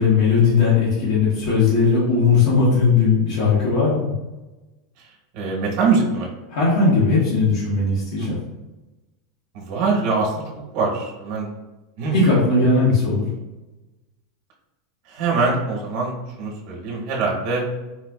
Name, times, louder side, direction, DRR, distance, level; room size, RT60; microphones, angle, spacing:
voice 1, 0.0-4.1 6.5-8.4 12.1-13.2, left 4 dB, 85° left, -8 dB, 1.1 m, -18 dB
voice 2, 5.3-6.3 8.2-8.4 9.5-10.3 10.7-11.5 12.0-12.2 15.1-17.6, right 4 dB, 55° right, -1 dB, 1.0 m, -23 dB
4.3 x 2.3 x 2.3 m, 1.1 s
supercardioid pair, 145°, 2 cm